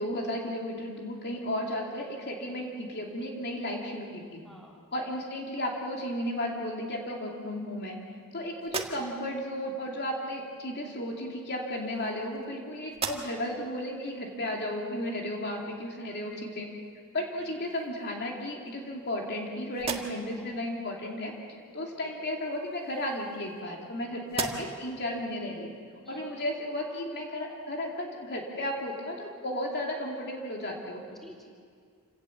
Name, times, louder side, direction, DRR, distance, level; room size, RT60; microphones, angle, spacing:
voice 1, 0.0-4.4 4.9-8.0 8.3-16.7 17.1-21.4 21.7-25.7 26.1-31.0, left 1 dB, 50° left, 0 dB, 2.7 m, -34 dB
voice 2, 4.4-4.8 9.4-9.9 10.8-11.0 15.9-16.1 17.4-17.6 20.3-20.5 21.9-22.3 26.0-26.3 31.2-31.5, equal, ahead, -2 dB, 3.2 m, -55 dB
sound 1, 8.6-9.4 10.6-10.7 11.7-12.5 12.9-13.6 14.1-14.2 16.9-17.0 17.4-18.1 18.7-19.4 19.7-20.5 22.5-23.9 24.3-24.9, right 4 dB, 25° right, 1.5 m, -39 dB
27.5 x 17.5 x 7.2 m, 2.1 s
head